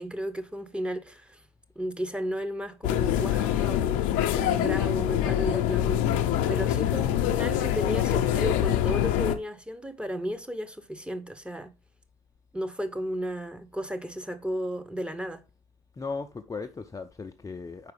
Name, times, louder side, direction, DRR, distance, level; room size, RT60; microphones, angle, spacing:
voice 1, 0.0-1.4 1.8-11.7 12.5-15.4, equal, 5° right, 0.9 m, -34 dB
sound 1, 2.8-9.4, left 11 dB, 70° left, 0.6 m, -25 dB
voice 2, 16.0-17.9, left 4 dB, 20° left, 0.5 m, -37 dB
4.8 x 4.6 x 4.9 m
hypercardioid pair, 55°, 16 cm